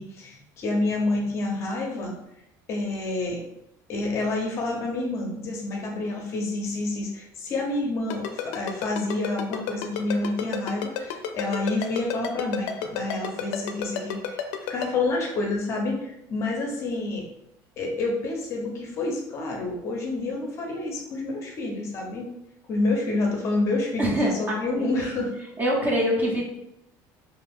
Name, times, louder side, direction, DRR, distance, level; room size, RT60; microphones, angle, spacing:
voice 1, 0.0-2.1 2.7-3.4 3.9-14.4 14.7-17.3 17.8-22.3 22.7-25.3, left 2 dB, 35° left, 0 dB, 0.6 m, -28 dB
Ringtone, 8.1-14.9, left 9 dB, 85° left, 0.4 m, -30 dB
voice 2, 24.0-24.5 25.6-26.4, right 1 dB, 20° right, -1 dB, 0.5 m, -23 dB
2.5 x 2.3 x 3.4 m, 0.84 s
cardioid pair, 170°, 8 cm